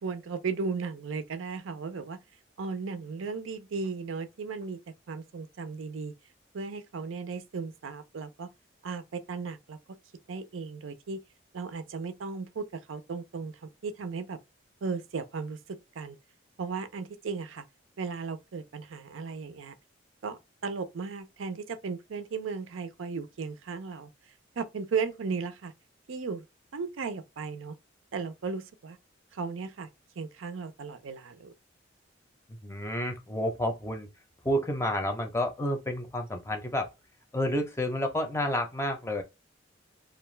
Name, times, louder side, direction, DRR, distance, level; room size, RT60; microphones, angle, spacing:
voice 1, 0.0-2.2 2.6-4.8 5.1-6.1 6.5-8.5 8.8-10.0 10.3-11.2 11.5-14.4 14.8-16.2 16.6-17.6 18.0-19.8 20.2-24.1 24.6-25.7 26.1-26.4 26.7-27.7 28.1-29.0 29.3-29.9 30.2-31.5, right 5 dB, 85° right, 0.5 m, -36 dB
voice 2, 32.5-34.1 34.4-36.9 37.3-39.2, left 1 dB, 15° left, 0.5 m, -30 dB
2.4 x 2.2 x 3.1 m
head